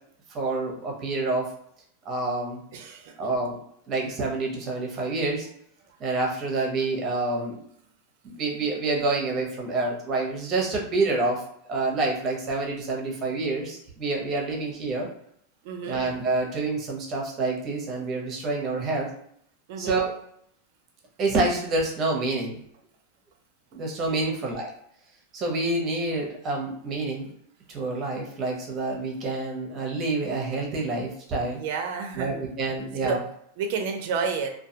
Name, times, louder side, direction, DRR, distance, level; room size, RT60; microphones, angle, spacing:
voice 1, 0.3-1.5 2.0-2.6 3.2-3.6 3.9-5.5 6.0-7.6 8.2-11.4 11.7-15.1 15.9-19.1 19.8-20.1 21.2-22.6 23.7-24.7 25.3-27.3 27.7-31.6 32.2-33.2, right 3 dB, 30° right, 0 dB, 0.7 m, -27 dB
voice 2, 2.7-3.1 15.6-16.0 19.7-20.0 24.2-24.5 31.5-32.5 33.0-33.2 33.6-34.5, right 5 dB, 60° right, 4 dB, 0.5 m, -30 dB
2.3 x 2.3 x 2.7 m, 0.69 s
supercardioid pair, 145°, 0 cm